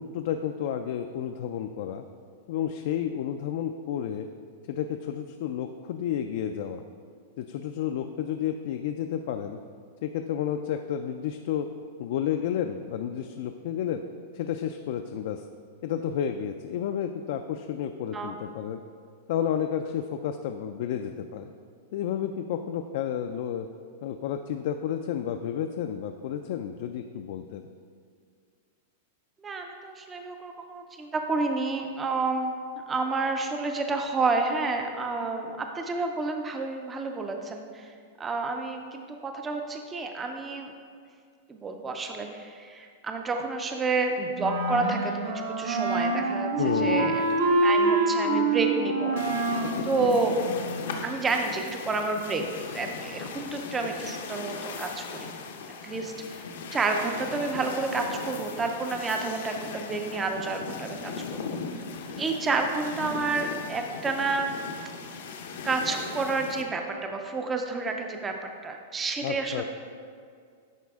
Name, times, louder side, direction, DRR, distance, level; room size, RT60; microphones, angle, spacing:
voice 1, 0.0-2.0 2.5-4.3 4.7-6.8 7.4-9.6 10.0-11.7 12.0-14.0 14.3-15.5 15.8-18.8 19.3-21.5 21.9-23.7 24.0-27.7 46.6-47.2 69.2-69.6, left 9 dB, 55° left, 6 dB, 0.3 m, -31 dB
voice 2, 29.4-32.6 32.9-37.9 38.2-40.7 41.5-46.5 46.8-47.2 47.6-49.2 49.8-50.4 50.6-52.4 52.7-55.3 55.8-56.4 56.7-61.6 62.1-64.5 65.6-68.3 68.6-69.6, right 3 dB, 15° right, 4 dB, 0.4 m, -30 dB
Wind instrument woodwind instrument, 44.4-51.0, right 2 dB, 85° right, 1.3 m, -26 dB
sound 1, 49.2-66.6, left 5 dB, 75° left, 0.7 m, -38 dB
10.5 x 4.1 x 3.5 m, 2.2 s
supercardioid pair, 160°, 0 cm